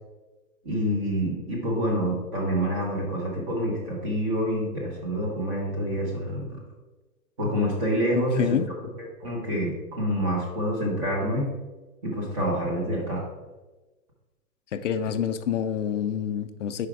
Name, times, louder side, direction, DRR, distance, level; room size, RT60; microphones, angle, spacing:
voice 1, 0.6-6.5 7.4-8.6 9.2-11.5 12.0-13.2, equal, 20° right, -2 dB, 1.1 m, -27 dB
voice 2, 8.1-8.7 14.7-16.9, left 8 dB, 55° left, 9 dB, 0.5 m, -27 dB
5.1 x 5.0 x 4.7 m, 1.2 s
hypercardioid pair, 175°, 45 cm